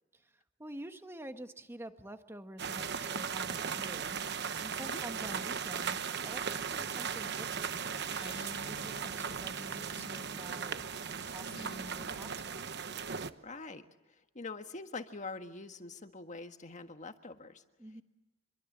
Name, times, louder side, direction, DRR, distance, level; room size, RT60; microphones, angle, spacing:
voice 1, 0.6-4.2 4.6-10.8 11.2-12.6 17.8-18.0, right 1 dB, 15° right, 7 dB, 1.5 m, -48 dB
sound 1, 2.6-13.3, right 6 dB, 60° right, 1.1 m, -37 dB
Acoustic guitar, 6.8-10.9 11.5-13.0, left 3 dB, 55° left, 1.3 m, -53 dB
voice 2, 13.4-17.6, left 3 dB, 40° left, 7 dB, 1.6 m, -44 dB
26.5 x 23.0 x 7.4 m, 1.1 s
head